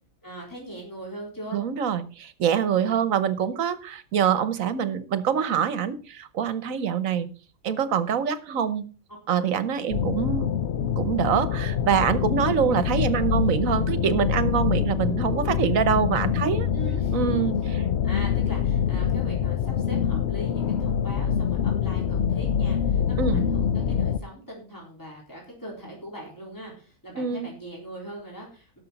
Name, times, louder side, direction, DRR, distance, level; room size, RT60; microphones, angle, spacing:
voice 1, 0.2-1.6 16.7-17.3 17.6-17.8 18.0-28.8, right 1 dB, 15° left, -2 dB, 4.1 m, -41 dB
voice 2, 1.5-7.3 7.6-8.9 9.3-10.5 11.0-16.7 17.1-17.8 23.2-23.5 27.2-27.5, right 8 dB, 75° right, 14 dB, 1.3 m, -25 dB
sound 1, 9.9-24.2, left 8 dB, 60° left, 0.8 m, -25 dB
17.5 x 6.7 x 4.0 m, 0.37 s
omnidirectional pair, 1.4 m